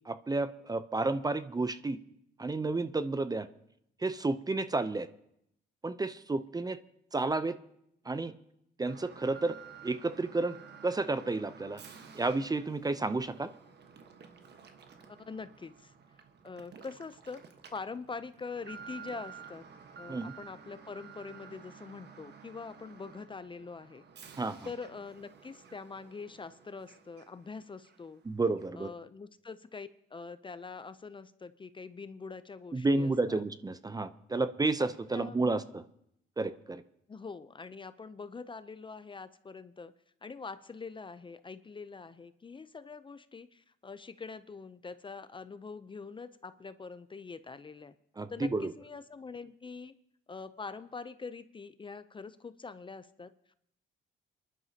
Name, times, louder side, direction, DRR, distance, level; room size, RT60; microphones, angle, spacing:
voice 1, 0.1-2.0 2.4-3.5 4.0-5.1 5.8-6.8 7.1-7.5 8.1-8.3 8.8-9.6 9.8-10.6 10.8-11.8 12.1-13.5 20.1-20.3 24.4-24.7 28.3-28.9 32.7-35.8 36.4-36.8 48.2-48.7, right 3 dB, 20° right, 13 dB, 0.6 m, -31 dB
Alarm, 8.9-27.5 27.8-28.0 28.6-28.7, right 6 dB, 60° right, 1.3 m, -52 dB
voice 2, 15.2-15.9 16.4-17.4 17.7-19.6 20.0-24.0 24.6-28.2 28.8-33.4 34.3-34.5 35.1-35.6 37.1-39.9 40.2-47.9 48.3-49.9 50.3-53.3, left 4 dB, 25° left, 13 dB, 0.5 m, -44 dB
26.5 x 11.0 x 2.8 m, 0.75 s
cardioid pair, 90°, 20 cm